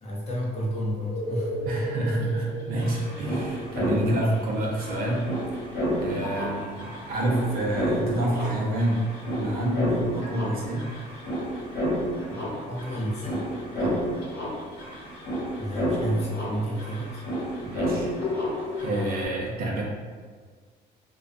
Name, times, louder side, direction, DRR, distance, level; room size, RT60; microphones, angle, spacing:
voice 1, 0.0-1.6 12.7-13.5 15.6-17.2, equal, 40° left, -3 dB, 0.6 m, -30 dB
sound 1, 0.8-12.4 16.7-16.8, equal, 80° right, 1.2 m, -40 dB
voice 2, 1.6-5.3 5.6-10.9 12.3-12.5 13.8-14.1 17.6-18.1 18.8-19.8, right 1 dB, 60° right, -2 dB, 0.6 m, -28 dB
sound 2, 2.2-2.3 2.5-19.2, equal, 85° left, 1.1 m, -31 dB
2.3 x 2.2 x 2.4 m, 1.5 s
cardioid pair, 110°, 17 cm